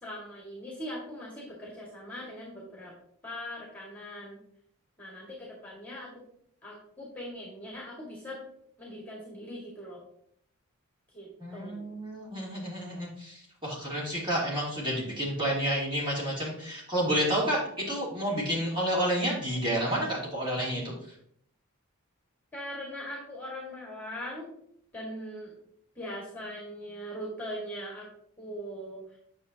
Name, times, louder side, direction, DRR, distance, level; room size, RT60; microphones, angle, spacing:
voice 1, 0.0-2.9 3.2-4.4 5.0-6.1 6.6-8.4 8.8-10.0 11.1-11.9 22.5-24.5 24.9-25.6 26.0-28.1 28.4-29.2, equal, 10° left, -4 dB, 1.8 m, -40 dB
voice 2, 11.4-20.9, equal, 20° right, -5 dB, 2.8 m, -30 dB
9.0 x 6.5 x 2.8 m, 0.67 s
head